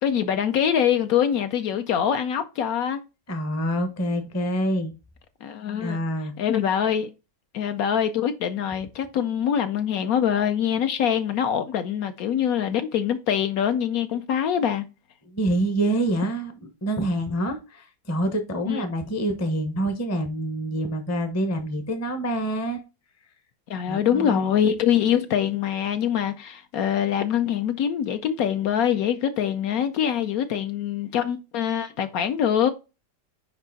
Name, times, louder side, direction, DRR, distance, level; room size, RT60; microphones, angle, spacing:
voice 1, 0.0-3.0 5.4-6.0 6.4-7.1 7.5-14.9 18.7-18.8 23.7-32.7, left 9 dB, 70° left, 1.0 m, -24 dB
voice 2, 3.3-4.9 5.8-6.3 15.3-16.5 16.8-22.8 23.9-24.6, right 1 dB, 15° left, 0.5 m, -26 dB
5.5 x 4.9 x 3.9 m
omnidirectional pair, 1.7 m